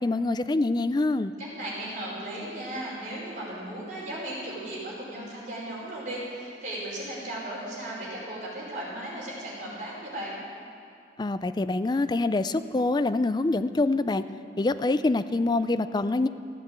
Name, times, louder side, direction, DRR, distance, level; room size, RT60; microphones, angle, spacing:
voice 1, 0.0-1.3 11.2-14.2 14.6-16.3, left 2 dB, 25° left, 12 dB, 0.3 m, -25 dB
voice 2, 1.5-10.4, right 1 dB, 45° right, -6 dB, 4.9 m, -36 dB
15.5 x 8.9 x 8.3 m, 2.5 s
head